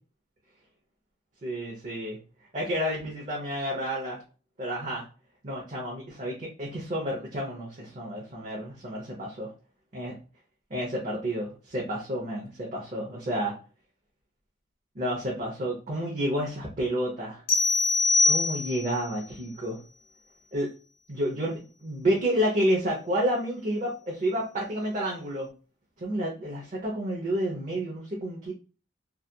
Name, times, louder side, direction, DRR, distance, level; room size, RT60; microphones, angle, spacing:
voice 1, 1.4-2.2 2.5-4.2 4.6-5.0 5.4-9.5 9.9-10.2 10.7-13.5 14.9-17.4 18.2-19.8 20.5-20.7 21.1-25.5 26.0-28.5, equal, 40° right, -3 dB, 0.7 m, -30 dB
sound 1, 17.5-19.0, left 3 dB, 55° left, 0.7 m, -23 dB
2.7 x 2.3 x 2.2 m, 0.35 s
head